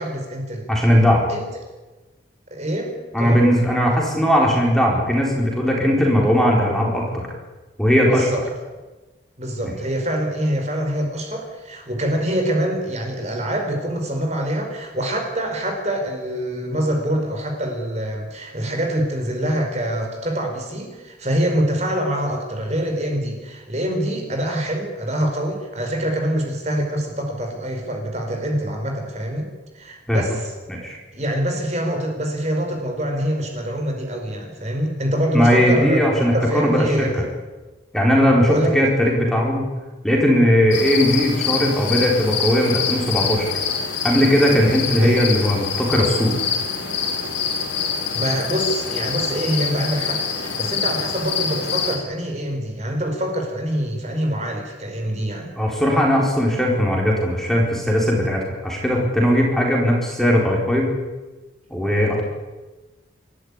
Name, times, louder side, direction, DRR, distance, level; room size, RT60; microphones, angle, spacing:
voice 1, 0.0-0.7 1.3-1.5 2.5-3.4 8.1-8.4 9.4-29.5 29.7-30.5 31.1-36.1 36.3-37.4 38.5-38.9 45.0-45.1 48.1-55.5, right 1 dB, 35° right, 3 dB, 5.0 m, -25 dB
voice 2, 0.7-1.2 3.1-7.3 7.8-8.3 9.6-9.7 30.1-30.2 30.7-31.0 35.3-37.2 37.9-39.7 40.0-43.5 44.0-46.3 55.6-60.9 61.7-62.2, equal, ahead, -2 dB, 4.4 m, -18 dB
sound 1, 40.7-52.0, left 6 dB, 75° left, 5.2 m, -25 dB
27.0 x 14.0 x 10.0 m, 1.2 s
head